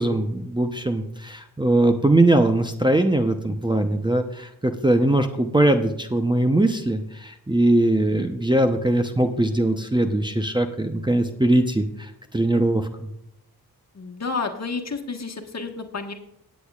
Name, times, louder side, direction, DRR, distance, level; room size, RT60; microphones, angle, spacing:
voice 1, 0.0-13.1, right 1 dB, 10° right, 4 dB, 0.8 m, -21 dB
voice 2, 13.9-16.1, left 4 dB, 40° left, 4 dB, 1.5 m, -30 dB
19.0 x 8.4 x 2.4 m, 0.79 s
supercardioid pair, 50°, 40 cm